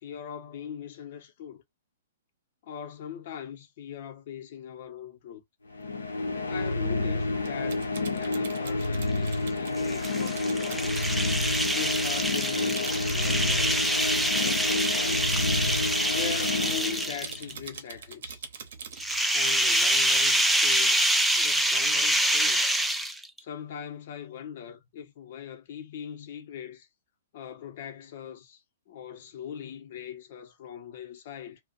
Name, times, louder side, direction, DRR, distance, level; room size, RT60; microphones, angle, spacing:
voice 1, 0.0-1.6 2.6-5.4 6.4-11.0 11.7-15.4 16.1-18.5 19.3-22.7 23.4-26.9 27.3-31.6, left 9 dB, 55° left, 0.8 m, -41 dB
sound 1, 5.7-17.6, left 2 dB, 85° left, 0.7 m, -29 dB
Typing, 7.4-20.4, right 6 dB, 65° right, 0.8 m, -44 dB
sound 2, 9.8-17.5 18.9-23.4, right 1 dB, ahead, 0.4 m, -26 dB
2.5 x 2.2 x 3.9 m
hypercardioid pair, 120°, 0 cm